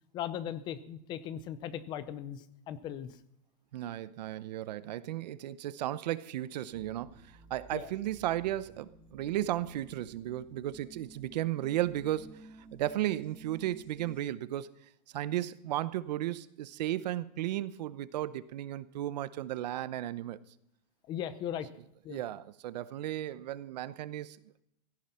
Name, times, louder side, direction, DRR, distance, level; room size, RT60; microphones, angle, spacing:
voice 1, 0.1-3.1 7.7-7.9 21.1-21.7 22.0-22.2, left 10 dB, 20° left, 0.7 m, -38 dB
voice 2, 3.7-14.7 15.1-20.4 22.1-24.6, right 13 dB, 80° right, 0.8 m, -35 dB
sound 1, 6.7-14.2, right 2 dB, 5° left, 2.3 m, -54 dB
16.5 x 14.0 x 4.3 m
supercardioid pair, 180°, 21 cm